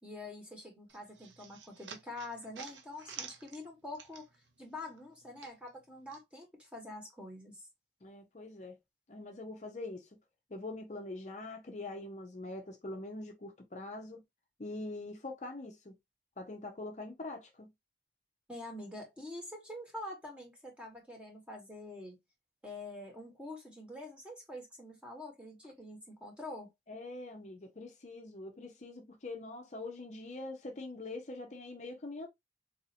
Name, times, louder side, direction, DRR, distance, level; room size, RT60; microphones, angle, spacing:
voice 1, 0.0-4.2 4.6-7.6 18.5-22.2 22.6-26.7, left 2 dB, 5° right, 1.2 m, -46 dB
sound 1, 0.9-4.5 4.8-6.2, right 6 dB, 85° right, 0.7 m, -50 dB
voice 2, 8.0-8.8 9.1-10.1 10.5-14.2 14.6-15.9 16.4-17.7 26.9-32.3, left 2 dB, 40° left, 0.6 m, -43 dB
4.0 x 2.7 x 2.7 m
head